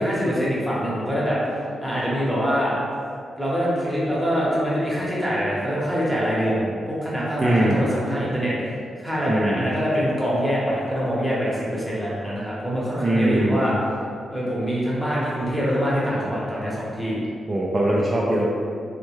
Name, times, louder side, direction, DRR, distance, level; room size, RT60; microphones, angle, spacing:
voice 1, 0.0-2.8 3.4-13.7 14.3-17.2, equal, ahead, -7 dB, 0.8 m, -24 dB
voice 2, 7.4-7.8 9.3-9.7 13.0-13.7 17.5-18.5, right 1 dB, 30° right, -5 dB, 0.3 m, -21 dB
3.4 x 2.1 x 3.1 m, 2.3 s
wide cardioid pair, 120°, 0 cm